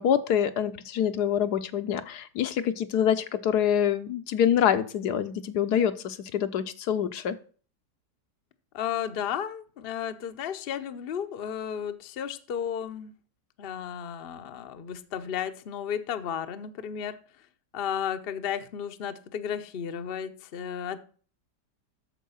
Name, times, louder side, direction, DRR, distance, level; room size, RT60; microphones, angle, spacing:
voice 1, 0.0-7.4, left 9 dB, 75° left, 10 dB, 1.2 m, -26 dB
voice 2, 8.7-13.1 13.6-17.2 17.7-21.0, left 8 dB, 50° left, 9 dB, 0.7 m, -33 dB
8.4 x 6.8 x 5.6 m, 0.41 s
omnidirectional pair, 1.8 m